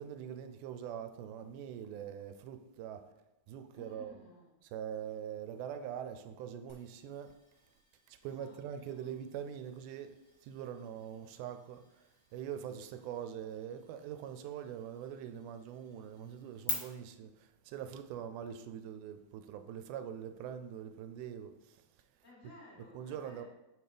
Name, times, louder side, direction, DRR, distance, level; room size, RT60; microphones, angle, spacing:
voice 1, 0.0-3.0 3.5-4.2 4.7-7.3 8.1-21.9 22.9-23.4, right 9 dB, 85° right, 2.0 m, -43 dB
voice 2, 3.7-4.5 8.4-9.1 11.1-11.3 22.2-23.4, left 2 dB, 15° left, 1.1 m, -57 dB
sound 1, 6.7-16.7, left 7 dB, 45° left, 1.6 m, -50 dB
5.6 x 3.8 x 5.0 m
omnidirectional pair, 3.5 m